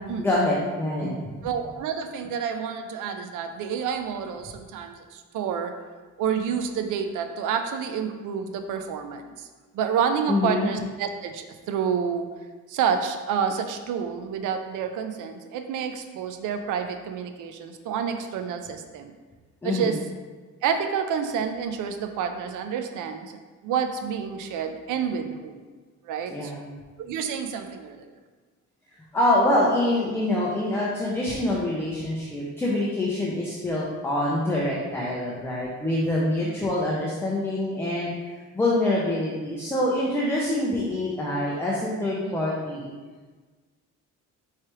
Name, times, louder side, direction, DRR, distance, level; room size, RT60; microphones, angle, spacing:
voice 1, 0.2-1.2 10.3-10.7 19.6-20.0 26.3-26.7 29.1-38.1 38.5-42.9, left 1 dB, 10° left, -5 dB, 0.5 m, -25 dB
voice 2, 1.4-5.7 6.2-9.5 9.7-12.3 12.7-19.1 19.6-20.0 20.6-23.3 23.6-25.6 26.0-26.5 27.0-28.1 36.4-36.5 42.3-42.4, right 7 dB, 85° right, 7 dB, 0.5 m, -29 dB
4.6 x 3.2 x 2.9 m, 1.4 s
cardioid pair, 135°, 30 cm